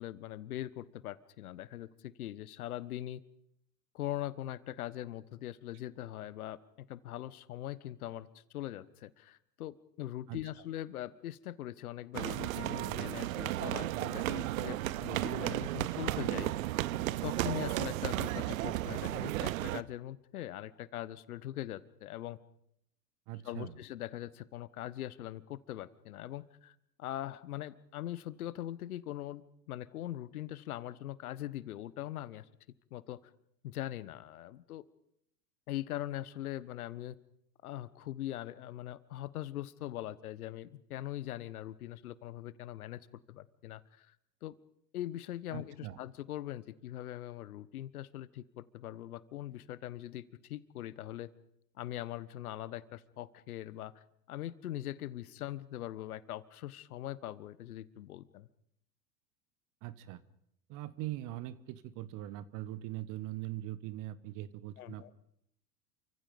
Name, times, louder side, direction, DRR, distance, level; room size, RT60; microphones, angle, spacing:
voice 1, 0.0-3.2 3.9-6.6 6.9-16.5 17.2-22.4 23.4-32.4 32.9-33.2 33.6-34.8 35.7-37.2 37.6-44.1 44.4-44.6 44.9-51.3 51.8-58.5 64.8-65.1, left 13 dB, 60° left, 17 dB, 1.4 m, -41 dB
sound 1, 12.1-19.8, right 15 dB, 55° right, 1.0 m, -34 dB
voice 2, 23.3-23.8 45.5-46.0 59.8-60.2 60.7-65.1, right 14 dB, 40° right, 16 dB, 1.4 m, -41 dB
29.0 x 25.0 x 5.4 m, 0.77 s
figure-of-eight pair, 90°, 49 cm